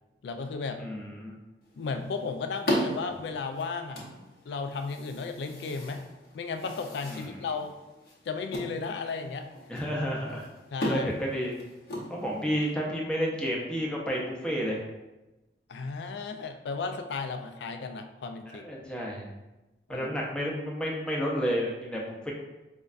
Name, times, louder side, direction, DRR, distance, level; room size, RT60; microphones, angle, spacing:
voice 1, 0.2-0.8 1.8-4.0 4.5-6.0 6.3-7.7 8.3-9.5 10.7-11.1 15.7-18.7 19.9-20.1, left 4 dB, 75° left, 6 dB, 0.3 m, -34 dB
voice 2, 0.8-1.4 7.1-7.5 9.7-10.5 10.9-11.5 12.1-14.8 18.5-19.3 19.9-22.3, equal, 5° left, -3 dB, 0.5 m, -31 dB
sound 1, 1.6-12.7, equal, 60° left, 0.8 m, -37 dB
5.1 x 2.2 x 2.4 m, 1.0 s
head